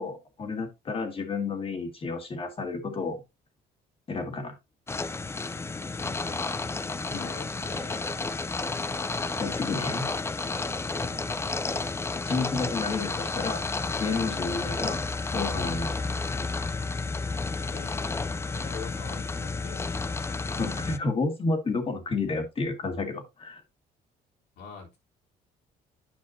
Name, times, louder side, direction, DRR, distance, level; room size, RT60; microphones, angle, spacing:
voice 1, 0.0-3.2 4.1-4.6 7.1-7.3 9.4-10.1 12.1-13.6 14.0-15.0 15.3-15.9 20.2-23.6, left 3 dB, 35° left, 1.9 m, -31 dB
sound 1, 4.9-21.0, left 3 dB, 15° left, 0.4 m, -31 dB
voice 2, 6.0-6.5 7.1-8.2 10.9-11.2 17.6-18.0 18.5-20.0 24.6-25.0, left 5 dB, 80° left, 3.5 m, -44 dB
9.7 x 5.7 x 2.7 m
cardioid pair, 110°, 17 cm